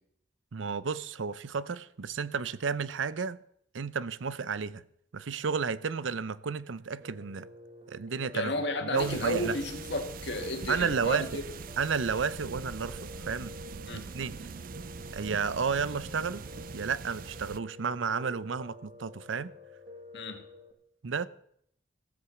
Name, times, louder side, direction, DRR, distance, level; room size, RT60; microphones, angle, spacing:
voice 1, 0.5-3.4 3.7-4.8 5.1-7.5 7.9-8.5 8.8-9.6 10.7-11.3 11.8-13.5 13.9-14.5 15.1-16.4 16.7-19.5 21.0-21.3, right 5 dB, 90° right, 0.6 m, -32 dB
Piano, 7.0-20.7, left 3 dB, 35° right, 1.8 m, -49 dB
voice 2, 8.3-11.4 13.9-14.1 20.1-20.4, left 2 dB, 65° left, 2.0 m, -33 dB
sound 1, 9.0-17.6, right 5 dB, 50° right, 0.5 m, -43 dB
15.5 x 8.0 x 7.0 m
head